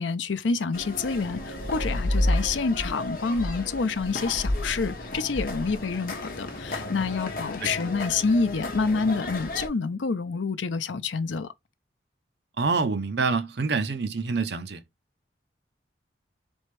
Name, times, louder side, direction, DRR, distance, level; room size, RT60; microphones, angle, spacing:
voice 1, 0.0-11.5, left 4 dB, 85° left, 0.6 m, -27 dB
sound 1, 0.7-9.7, left 1 dB, 50° left, 1.0 m, -31 dB
voice 2, 12.6-14.8, right 4 dB, 65° right, 0.6 m, -26 dB
4.3 x 3.5 x 3.3 m
head